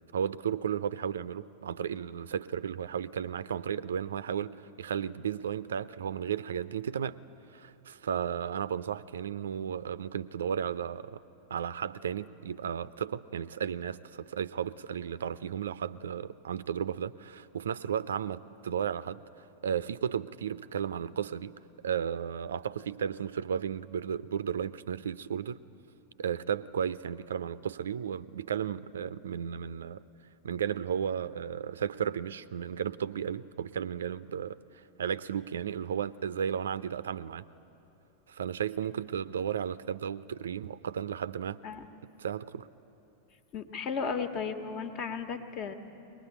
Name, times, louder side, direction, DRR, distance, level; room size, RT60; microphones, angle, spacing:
voice 1, 0.1-7.2 7.5-11.2 11.5-19.2 19.6-21.5 21.8-25.6 26.2-30.0 30.4-37.4 38.3-41.6 42.2-42.7, right 8 dB, 65° right, 16 dB, 0.5 m, -34 dB
voice 2, 43.5-45.7, left 5 dB, 40° left, 9 dB, 1.5 m, -34 dB
22.5 x 20.0 x 9.9 m, 2.9 s
figure-of-eight pair, 90°, 0 cm